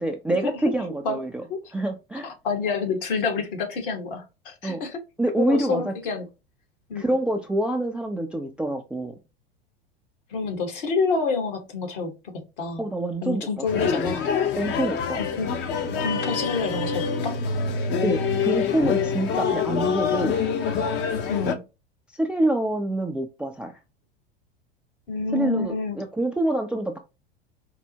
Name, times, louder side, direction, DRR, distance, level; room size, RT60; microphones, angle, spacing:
voice 1, 0.0-1.4 1.7-2.3 4.6-4.8 5.2-5.9 7.0-9.2 12.8-14.1 14.6-15.2 18.0-20.4 22.2-23.7 25.3-27.0, right 1 dB, 5° right, 0.3 m, -26 dB
voice 2, 2.2-5.0 5.4-6.3 6.9-7.0 10.3-12.9 13.2-14.3 15.1-15.5 16.0-17.4 21.3-21.6 25.1-26.0, left 4 dB, 60° left, 1.2 m, -28 dB
sound 1, 13.7-21.5, left 6 dB, 35° left, 0.6 m, -26 dB
4.5 x 2.0 x 2.7 m
figure-of-eight pair, 80°, 30 cm